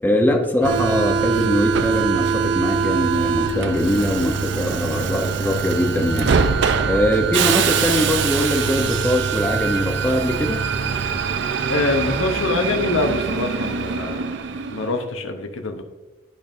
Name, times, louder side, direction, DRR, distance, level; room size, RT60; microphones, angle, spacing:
voice 1, 0.0-6.3 6.8-10.6, left 1 dB, 10° left, 2 dB, 0.7 m, -22 dB
Subway metro underground, 0.6-15.0, right 6 dB, 60° right, 0.4 m, -23 dB
voice 2, 11.7-14.3 14.7-15.8, left 2 dB, 80° left, 5 dB, 0.8 m, -24 dB
11.5 x 5.3 x 2.5 m, 1.1 s
head